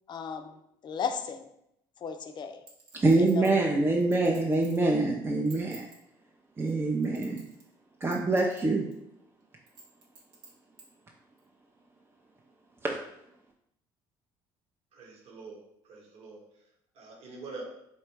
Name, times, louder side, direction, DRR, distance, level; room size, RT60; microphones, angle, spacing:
voice 1, 0.1-1.5 2.0-2.6 3.2-3.6, left 6 dB, 45° left, 9 dB, 0.5 m, -36 dB
Chink clink, 2.7-4.9 5.3-6.0 6.6-7.7 8.0-8.6 8.9-9.0 9.7-10.9 11.4-11.5, right 3 dB, 85° right, 1.1 m, -51 dB
voice 2, 2.9-5.9 6.6-7.4 8.0-8.9 12.8-13.0, right 2 dB, 20° right, 0 dB, 0.5 m, -25 dB
voice 3, 14.9-15.6 15.9-16.4 17.0-17.6, right 3 dB, 65° right, -1 dB, 1.2 m, -44 dB
4.2 x 2.2 x 4.5 m, 0.80 s
supercardioid pair, 80°, 11 cm